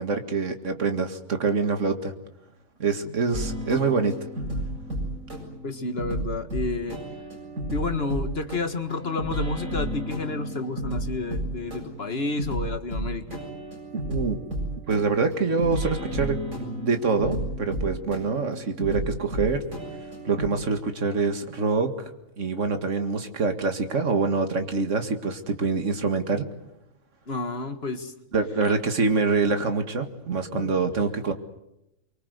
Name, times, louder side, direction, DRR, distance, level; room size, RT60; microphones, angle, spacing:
voice 1, 0.0-2.1 2.8-4.1 14.1-14.4 14.9-19.6 20.3-21.9 22.4-26.5 28.3-31.3, right 4 dB, 65° right, 7 dB, 2.3 m, -25 dB
hip hop, 3.3-20.5, right 1 dB, 85° right, 8.0 m, -32 dB
voice 2, 5.6-7.0 7.7-13.4 27.3-28.1 28.6-28.7 30.5-30.7, left 3 dB, 50° left, 8 dB, 2.0 m, -30 dB
24.5 x 24.0 x 8.1 m, 0.87 s
omnidirectional pair, 1.4 m